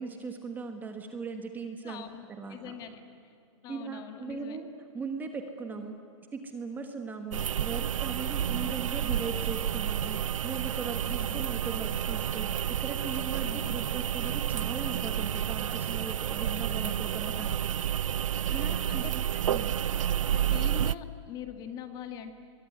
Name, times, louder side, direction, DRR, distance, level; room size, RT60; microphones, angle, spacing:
voice 1, 0.0-2.0 2.3-2.8 3.7-5.9 6.3-17.5 18.5-19.2 19.5-19.7, right 4 dB, 10° right, 5 dB, 1.4 m, -39 dB
voice 2, 1.8-3.3 3.6-4.6 5.8-6.0 8.4-8.8 11.0-11.4 13.4-13.8 16.8-17.0 17.4-17.6 18.5-19.7 20.3-22.3, left 8 dB, 25° left, 7 dB, 1.9 m, -44 dB
sound 1, 7.3-20.9, right 10 dB, 90° right, 0.6 m, -30 dB
25.0 x 22.5 x 9.6 m, 2.5 s
hypercardioid pair, 155°, 16 cm